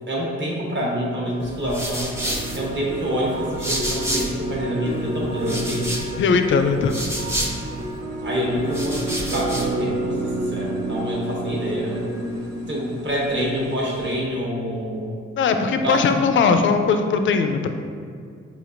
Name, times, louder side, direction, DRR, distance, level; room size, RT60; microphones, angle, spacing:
voice 1, 0.1-2.1 2.5-5.9 8.2-12.0 12.7-15.2 15.8-16.0, equal, 40° right, -4 dB, 1.1 m, -26 dB
sound 1, 1.4-4.5 4.9-8.0 8.5-9.8, right 1 dB, 10° right, 0.8 m, -30 dB
sound 2, 2.1-14.1, right 1 dB, 60° right, 0.7 m, -30 dB
voice 2, 6.2-7.0 15.4-17.7, left 5 dB, 40° left, 7 dB, 0.4 m, -19 dB
5.0 x 2.4 x 2.5 m, 2.2 s
hypercardioid pair, 40°, 30 cm